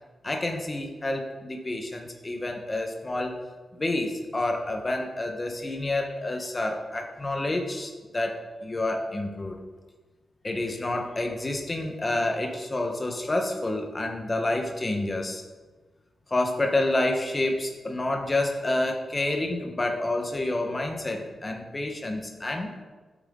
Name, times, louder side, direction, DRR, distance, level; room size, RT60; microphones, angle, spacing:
voice 1, 0.2-3.4 3.7-9.6 10.4-15.4 16.3-22.7, left 2 dB, 25° left, 3 dB, 1.4 m, -29 dB
12.5 x 8.6 x 4.0 m, 1.3 s
wide cardioid pair, 130°, 0 cm